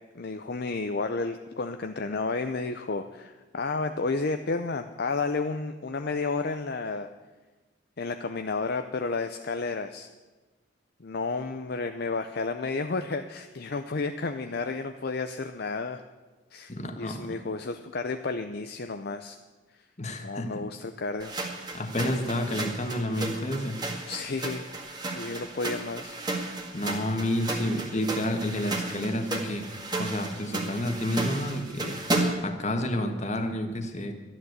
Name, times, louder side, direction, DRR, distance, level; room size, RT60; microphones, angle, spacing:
voice 1, 0.1-7.1 8.0-10.1 11.0-16.0 16.5-19.4 20.2-21.3 24.1-24.6 25.1-26.1, left 3 dB, 55° left, 7 dB, 0.6 m, -31 dB
voice 2, 16.7-17.4 20.0-20.6 21.7-23.8 26.7-29.7 30.0-32.0 32.4-34.2, left 1 dB, 35° left, 6 dB, 1.5 m, -30 dB
sound 1, 21.2-32.5, right 2 dB, 20° right, 1.8 m, -33 dB
12.5 x 11.0 x 8.0 m, 1.2 s
head